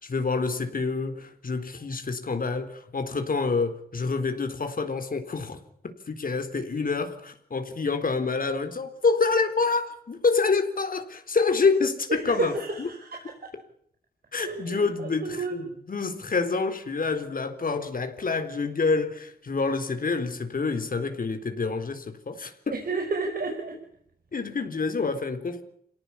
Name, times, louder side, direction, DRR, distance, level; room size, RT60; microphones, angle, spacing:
voice 1, 0.0-5.6 5.8-12.5 12.8-12.9 14.3-22.5 24.3-25.6, left 4 dB, 65° left, 3.9 m, -27 dB
voice 2, 12.1-13.5 14.3-15.6 22.7-23.8, right 4 dB, 75° right, 5.6 m, -31 dB
27.5 x 18.0 x 8.5 m
cardioid pair, 70°, 16 cm